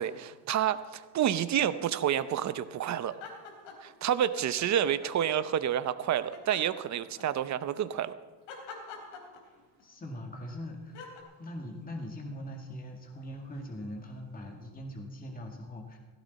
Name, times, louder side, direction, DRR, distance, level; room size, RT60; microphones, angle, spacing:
voice 1, 0.0-3.2 3.8-8.2, right 10 dB, 40° right, 13 dB, 0.7 m, -29 dB
sound 1, 3.1-4.0 4.3-5.3 6.3-7.5 8.5-9.8 10.9-11.2, left 6 dB, 75° left, 3.5 m, -46 dB
voice 2, 9.8-11.0 11.4-16.0, equal, 20° left, 1 dB, 2.1 m, -41 dB
17.0 x 16.0 x 4.2 m, 1.3 s
cardioid pair, 125°, 45 cm